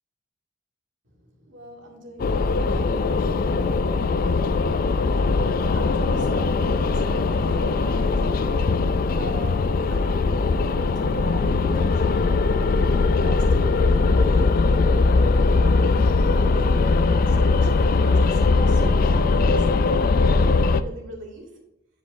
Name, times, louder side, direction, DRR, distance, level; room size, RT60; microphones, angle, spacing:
voice 1, 1.2-5.1 5.6-14.6 15.6-16.1 16.3-21.5, right 1 dB, 80° right, -1 dB, 2.3 m, -42 dB
sound 1, 2.2-20.8, left 3 dB, 50° left, 0.3 m, -20 dB
10.5 x 5.0 x 2.6 m, 0.89 s
head